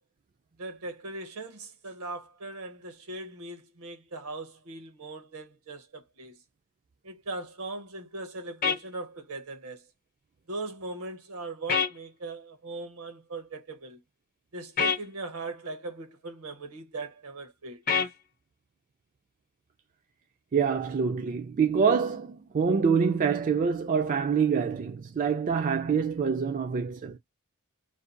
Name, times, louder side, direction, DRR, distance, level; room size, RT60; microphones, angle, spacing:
voice 1, 0.6-6.4 7.0-9.8 10.5-14.0 14.5-17.8, right 2 dB, 80° right, 0.7 m, -39 dB
sound 1, 8.6-8.8 11.7-11.9 14.8-15.0 17.9-18.1, left 6 dB, 40° left, 0.6 m, -25 dB
voice 2, 20.5-27.2, right 6 dB, 35° right, 0.3 m, -26 dB
2.5 x 2.2 x 2.5 m
head